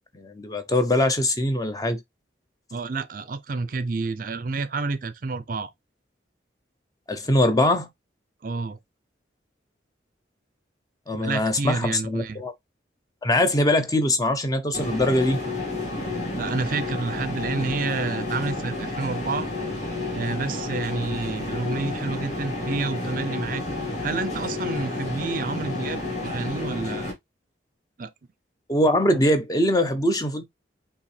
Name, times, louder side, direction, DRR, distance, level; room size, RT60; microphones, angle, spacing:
voice 1, 0.1-2.0 7.1-7.9 11.1-12.5 13.2-15.4 28.7-30.4, left 1 dB, 20° left, 0.5 m, -22 dB
voice 2, 2.7-5.7 8.4-8.8 11.1-12.4 16.4-19.5 20.1-23.6 24.0-27.2 28.0-28.1, right 4 dB, 45° right, 0.4 m, -29 dB
sound 1, 14.7-27.1, left 2 dB, 40° left, 1.8 m, -30 dB
5.4 x 2.8 x 3.2 m
head